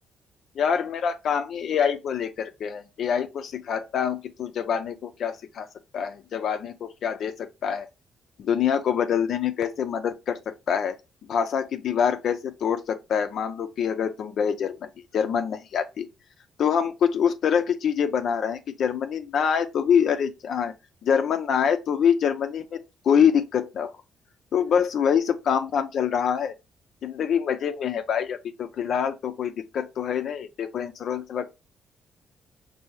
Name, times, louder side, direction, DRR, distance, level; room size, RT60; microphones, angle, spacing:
voice 1, 0.6-5.7 5.9-7.9 8.4-11.0 11.3-16.1 16.6-20.7 21.0-22.8 23.0-23.9 24.5-26.5 27.0-31.5, left 7 dB, 65° left, 0.5 m, -25 dB
5.4 x 2.7 x 3.1 m
cardioid pair, 90°, 0 cm